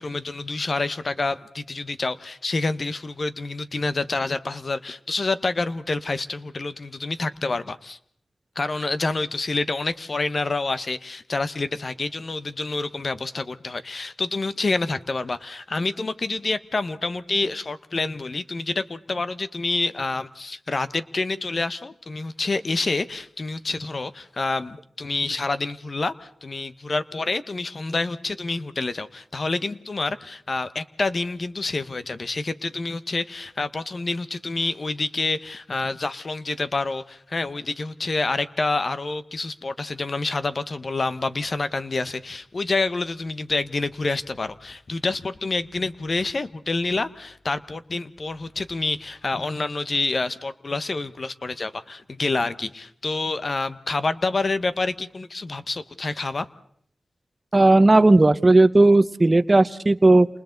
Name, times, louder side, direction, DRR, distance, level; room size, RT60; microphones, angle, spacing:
voice 1, 0.0-8.0 8.5-56.5, left 3 dB, 50° left, 12 dB, 1.2 m, -28 dB
voice 2, 57.5-60.3, right 2 dB, 30° right, 13 dB, 0.9 m, -15 dB
30.0 x 28.0 x 4.0 m, 0.67 s
wide cardioid pair, 75°, 0 cm